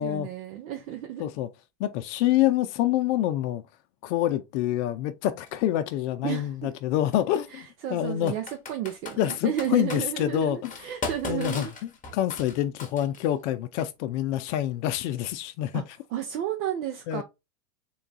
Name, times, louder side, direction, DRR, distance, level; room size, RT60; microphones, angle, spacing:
voice 1, 0.0-1.2 6.2-6.7 7.5-11.7 15.7-15.8 16.1-17.2, right 11 dB, 65° right, 0.8 m, -32 dB
voice 2, 1.8-3.6 4.0-8.3 9.2-10.7 11.3-11.7 12.1-15.8 17.1-17.2, left 12 dB, 50° left, 0.5 m, -26 dB
Computer keyboard, 5.5-5.6 7.1-7.4 8.3-10.0 10.6-13.3, left 4 dB, 15° left, 1.0 m, -37 dB
3.8 x 2.3 x 3.9 m
supercardioid pair, 130°, 46 cm